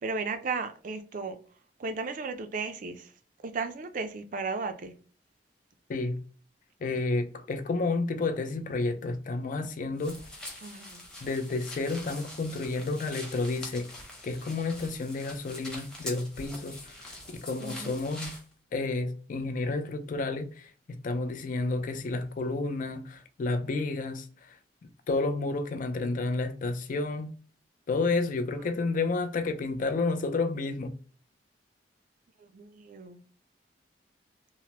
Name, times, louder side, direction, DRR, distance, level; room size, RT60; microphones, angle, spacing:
voice 1, 0.0-1.4 1.8-3.1 3.4-4.9 10.6-11.0 17.6-18.0 28.7-28.8 32.4-33.2, right 4 dB, 50° right, 0.4 m, -35 dB
voice 2, 6.8-10.3 11.2-13.9 14.2-16.9 17.3-18.4 18.7-20.7 21.0-24.3 25.1-27.3 27.9-30.9, left 3 dB, 50° left, 0.4 m, -30 dB
sound 1, 10.0-18.4, left 1 dB, 5° left, 0.8 m, -44 dB
3.1 x 2.0 x 2.9 m
head